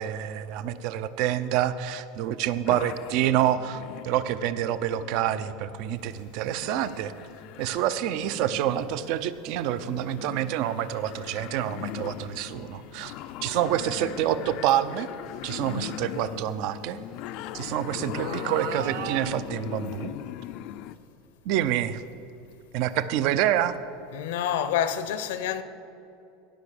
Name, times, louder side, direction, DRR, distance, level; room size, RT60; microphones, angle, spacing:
voice 1, 0.0-7.1 7.6-13.1 13.4-15.1 15.4-17.0 17.5-20.1 21.5-22.0 22.7-23.8, right 11 dB, 55° right, 0.6 m, -27 dB
sound 1, 2.6-21.0, left 12 dB, 50° left, 0.4 m, -40 dB
sound 2, 6.3-6.6 8.0-8.1 11.0-11.3 12.2-12.3 13.3-13.4 14.1-14.2 15.5-17.3 18.1-19.2, right 9 dB, 85° right, 0.9 m, -39 dB
voice 2, 24.1-25.6, left 9 dB, 80° left, 0.8 m, -27 dB
17.0 x 6.1 x 6.6 m
supercardioid pair, 155°, 0 cm